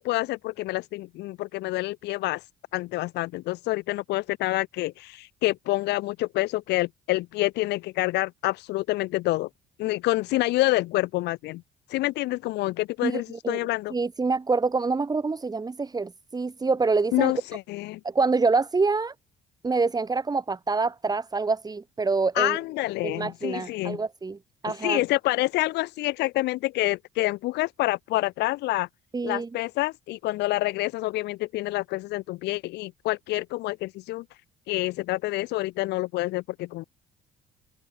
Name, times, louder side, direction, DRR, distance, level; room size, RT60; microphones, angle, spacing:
voice 1, 0.0-2.4 2.7-9.5 9.8-11.6 11.9-13.9 17.1-18.0 22.3-24.0 24.6-28.9 29.2-34.2 34.7-36.8, left 18 dB, 85° left, 4.2 m, -27 dB
voice 2, 13.0-13.6 13.9-17.3 18.0-19.1 19.6-22.6 23.0-24.4 24.6-25.0 29.1-29.5, right 4 dB, 25° right, 6.3 m, -26 dB
cardioid pair, 110°, 17 cm